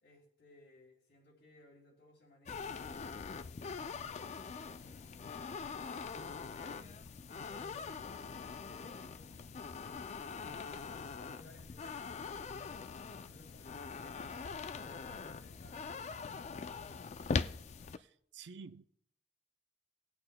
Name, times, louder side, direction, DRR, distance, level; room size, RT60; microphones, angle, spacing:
voice 1, 0.0-7.0 7.5-10.8 11.2-14.4 14.8-17.1, left 2 dB, 80° left, 3.2 m, -61 dB
sound 1, 2.5-18.0, left 5 dB, 40° left, 0.3 m, -42 dB
voice 2, 17.9-18.8, right 5 dB, 75° right, 0.5 m, -51 dB
19.5 x 8.4 x 2.2 m
head